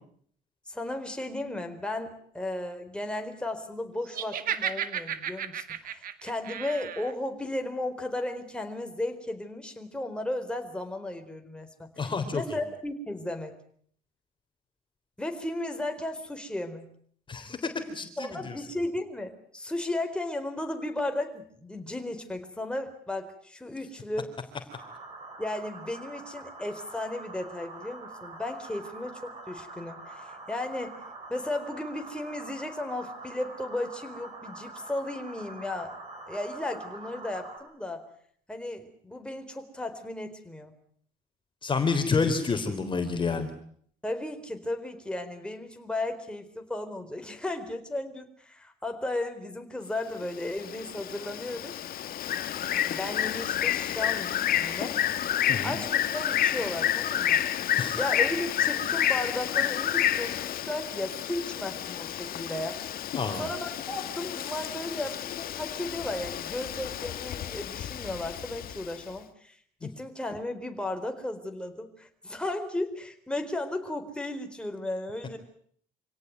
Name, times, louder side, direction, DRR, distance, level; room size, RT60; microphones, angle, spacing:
voice 1, 0.7-13.5 15.2-16.9 18.2-24.3 25.4-31.0 31.3-36.0 36.3-38.1 38.5-40.7 44.0-51.7 52.9-55.0 55.6-57.4 57.9-62.8 63.3-75.4, left 1 dB, 5° left, 5 dB, 4.1 m, -35 dB
Laughter, 4.1-7.1, right 9 dB, 55° right, 2.1 m, -34 dB
voice 2, 12.0-12.4 17.3-18.4 41.6-43.5 55.5-55.7 57.8-58.0 63.1-63.4, left 4 dB, 30° left, 7 dB, 3.7 m, -28 dB
sound 1, 24.7-37.6, right 2 dB, 35° right, 8.0 m, -45 dB
Bird, 50.2-69.0, left 10 dB, 60° left, 1.8 m, -30 dB
26.5 x 17.5 x 9.5 m, 0.62 s
cardioid pair, 110°, 17 cm